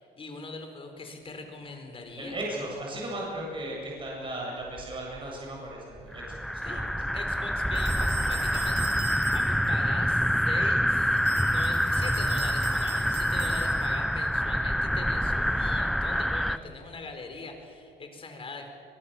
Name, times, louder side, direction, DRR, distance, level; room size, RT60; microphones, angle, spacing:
voice 1, 0.0-2.4 6.6-6.8 7.1-18.7, left 3 dB, 30° left, 5 dB, 4.4 m, -42 dB
voice 2, 2.2-6.8, right 1 dB, 30° right, -3 dB, 7.8 m, -36 dB
sound 1, 6.1-16.6, equal, ahead, 0.6 m, -26 dB
sound 2, 7.7-9.7 11.2-14.1, right 8 dB, 70° right, 4.4 m, -41 dB
23.0 x 22.5 x 7.1 m, 2.5 s
cardioid pair, 110°, 17 cm